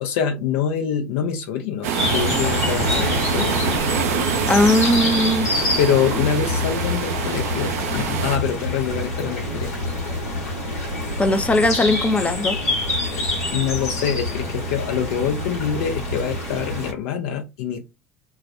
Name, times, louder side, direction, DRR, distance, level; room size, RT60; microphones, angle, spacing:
voice 1, 0.0-3.9 5.4-9.9 13.5-17.8, left 8 dB, 65° left, 0.5 m, -25 dB
sound 1, 1.8-8.4, right 7 dB, 70° right, 0.4 m, -26 dB
sound 2, 2.0-16.9, left 1 dB, 80° left, 1.0 m, -26 dB
voice 2, 4.5-5.5 11.2-12.6, left 2 dB, 15° left, 0.5 m, -19 dB
2.3 x 2.1 x 2.5 m
figure-of-eight pair, 65°, 8 cm